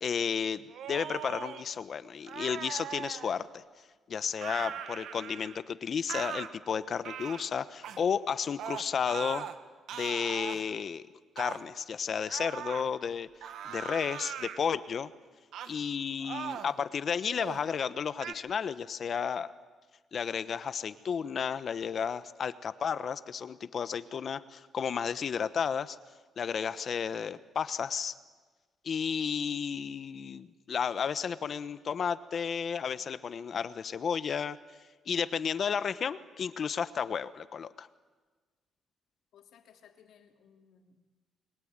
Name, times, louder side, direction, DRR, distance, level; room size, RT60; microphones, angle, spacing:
voice 1, 0.0-3.6 4.1-9.5 9.9-11.1 11.4-13.3 13.6-15.1 15.7-19.5 20.1-26.0 26.4-28.1 28.8-34.6 35.1-37.9, left 7 dB, 45° left, 14 dB, 1.0 m, -32 dB
sound 1, 0.7-1.6 2.3-3.4 4.4-5.6 6.1-6.5 7.0-7.4 7.8-8.0 8.6-9.6 9.9-10.6 11.4-11.6 12.3-12.9 13.4-14.6 15.5-15.8 16.2-16.8 17.3-17.6 18.2-18.3, right 9 dB, 75° right, 1.6 m, -40 dB
voice 2, 39.3-41.0, left 8 dB, 75° left, 4 dB, 3.0 m, -60 dB
29.0 x 22.5 x 8.9 m, 1.4 s
cardioid pair, 125°, 0 cm